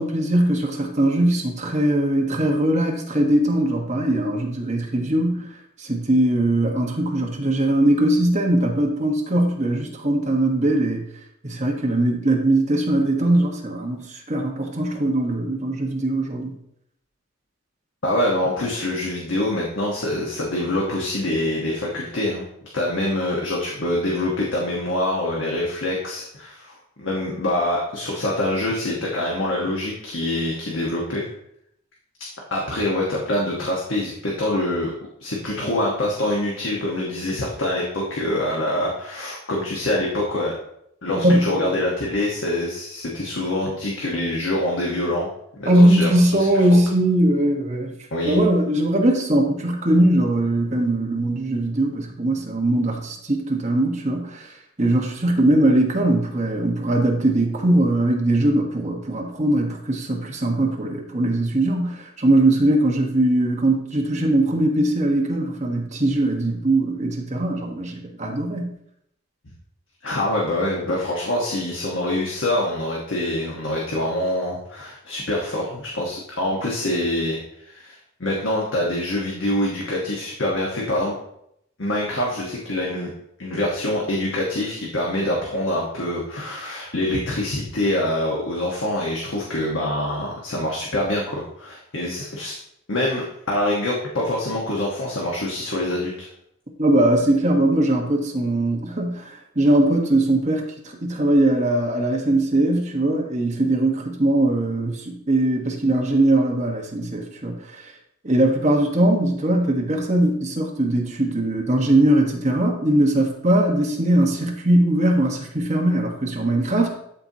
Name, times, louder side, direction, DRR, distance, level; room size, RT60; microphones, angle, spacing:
voice 1, 0.0-5.5 5.8-11.0 11.4-16.5 41.2-41.7 45.7-47.9 48.2-54.5 54.8-68.7 96.8-99.2 99.5-107.9 108.2-116.9, right 1 dB, 35° right, 1 dB, 1.2 m, -20 dB
voice 2, 18.0-22.5 22.7-31.2 32.5-34.9 35.2-40.5 41.0-45.3 45.5-46.6 48.1-48.4 70.0-81.1 81.8-83.1 83.4-92.6 92.9-96.3, left 1 dB, 70° left, -3 dB, 1.3 m, -25 dB
12.5 x 4.5 x 2.8 m, 0.75 s
head